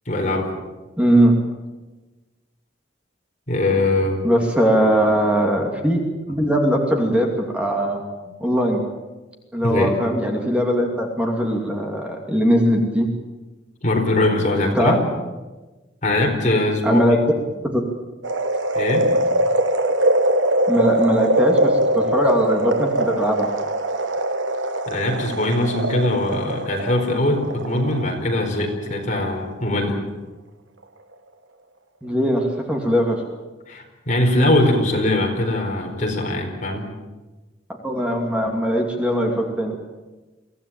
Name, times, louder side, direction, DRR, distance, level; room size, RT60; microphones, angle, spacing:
voice 1, 0.1-0.5 3.5-4.2 8.3-8.4 9.6-10.0 13.8-15.0 16.0-17.0 18.7-19.1 24.9-30.0 33.7-36.8, left 1 dB, 40° left, 2 dB, 4.4 m, -21 dB
voice 2, 1.0-1.3 4.2-6.0 6.3-8.0 8.4-8.8 9.5-13.1 14.7-15.0 16.8-17.2 17.6-17.8 20.7-23.5 32.0-33.2 37.8-39.8, equal, 5° right, 1 dB, 2.7 m, -20 dB
sound 1, 18.2-28.5 28.9-29.0, right 1 dB, 80° right, 1.5 m, -22 dB
24.0 x 16.5 x 8.8 m, 1.2 s
head